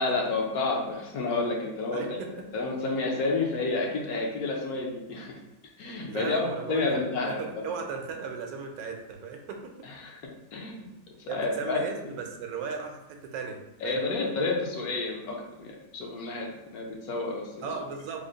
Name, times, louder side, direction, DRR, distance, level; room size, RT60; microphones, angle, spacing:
voice 1, 0.0-2.0 2.5-5.3 5.8-7.4 10.0-10.2 10.5-10.9 11.2-11.8 13.8-16.5 16.7-17.5, left 3 dB, 80° left, -1 dB, 1.2 m, -30 dB
voice 2, 1.9-2.3 6.0-7.0 7.2-9.7 11.3-14.0 17.6-18.3, right 5 dB, 80° right, 3 dB, 1.1 m, -36 dB
3.7 x 2.1 x 3.8 m, 0.92 s
omnidirectional pair, 1.6 m